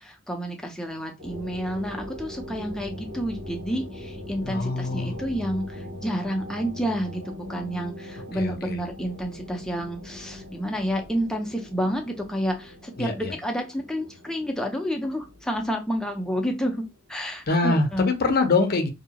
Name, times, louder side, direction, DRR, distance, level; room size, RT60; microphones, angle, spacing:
voice 1, 0.0-18.1, equal, 5° left, 0.5 m, -30 dB
sound 1, 1.2-17.5, left 1 dB, 80° right, 1.2 m, -41 dB
voice 2, 4.4-5.1 8.3-8.8 13.0-13.3 17.5-18.9, left 3 dB, 45° left, 0.6 m, -24 dB
2.7 x 2.3 x 2.9 m
head